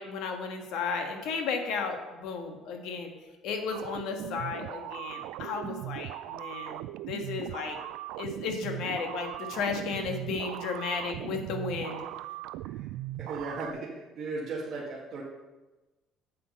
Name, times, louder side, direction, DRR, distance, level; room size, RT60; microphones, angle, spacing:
voice 1, 0.0-3.1 3.4-7.8 8.2-12.0, left 5 dB, 70° left, 4 dB, 1.5 m, -34 dB
sound 1, 3.7-13.7, right 15 dB, 90° right, 0.3 m, -39 dB
voice 2, 13.2-15.2, right 3 dB, 40° right, -6 dB, 1.6 m, -36 dB
8.0 x 7.5 x 5.4 m, 1.2 s
cardioid pair, 150°, 0 cm